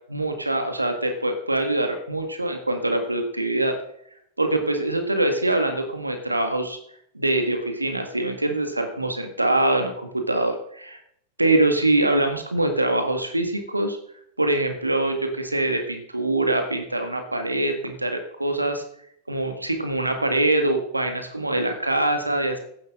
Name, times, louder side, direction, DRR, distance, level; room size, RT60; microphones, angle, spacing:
voice 1, 0.1-3.8 4.4-6.8 7.1-11.0 11.4-14.0 14.4-18.8 19.3-22.6, right 2 dB, 85° right, 6 dB, 1.8 m, -24 dB
15.0 x 11.0 x 3.7 m, 0.70 s
figure-of-eight pair, 90°, 0 cm